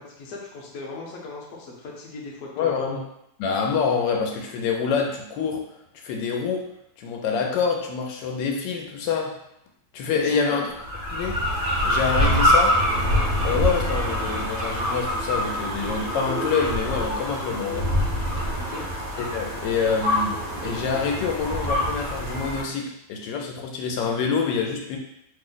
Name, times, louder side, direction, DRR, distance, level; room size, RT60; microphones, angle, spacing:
voice 1, 0.0-3.0 10.1-10.7 18.6-18.9, left 3 dB, 60° left, -2 dB, 0.9 m, -38 dB
voice 2, 2.6-3.0 3.4-5.6 6.0-6.7 7.0-9.3 9.9-10.6 11.1-11.4 11.8-12.8 13.4-17.9 19.2-25.0, left 5 dB, 85° left, 1 dB, 1.3 m, -26 dB
sound 1, 10.8-22.6, equal, 50° right, 0.6 m, -25 dB
3.1 x 2.0 x 3.8 m, 0.79 s
omnidirectional pair, 1.9 m